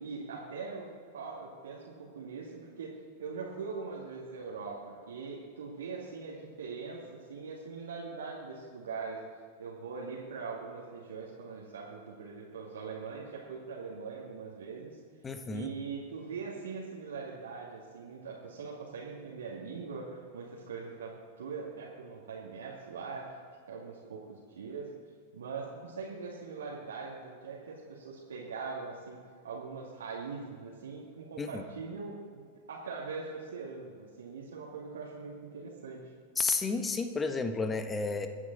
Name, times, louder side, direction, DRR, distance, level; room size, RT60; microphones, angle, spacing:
voice 1, 0.0-2.9 3.2-7.0 7.3-9.2 9.6-15.0 15.5-21.1 21.4-23.3 23.7-24.8 25.3-29.2 29.4-36.0, right 5 dB, 75° right, -5 dB, 2.4 m, -41 dB
voice 2, 15.2-15.7 31.4-31.6 36.4-38.3, left 4 dB, 20° left, 7 dB, 1.5 m, -31 dB
25.0 x 9.5 x 4.1 m, 2.1 s
figure-of-eight pair, 95°, 0 cm